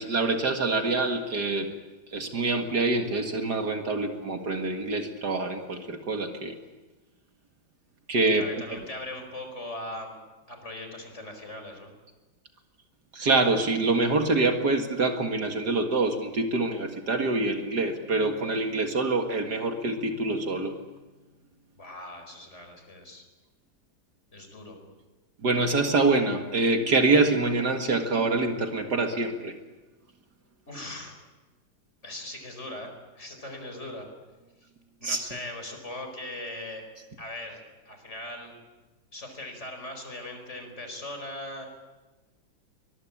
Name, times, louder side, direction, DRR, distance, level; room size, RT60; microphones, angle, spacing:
voice 1, 0.0-1.7 2.1-6.5 8.1-8.5 13.1-20.7 25.4-29.5 35.0-35.2, right 3 dB, 55° right, 5 dB, 2.4 m, -25 dB
voice 2, 8.3-10.2 10.5-11.9 21.8-23.2 24.3-24.8 30.7-31.2 32.0-34.1 34.6-34.7 35.0-36.8 37.2-38.5 39.1-41.7, left 1 dB, 35° left, 5 dB, 5.1 m, -39 dB
24.0 x 21.5 x 8.7 m, 1.2 s
omnidirectional pair, 2.1 m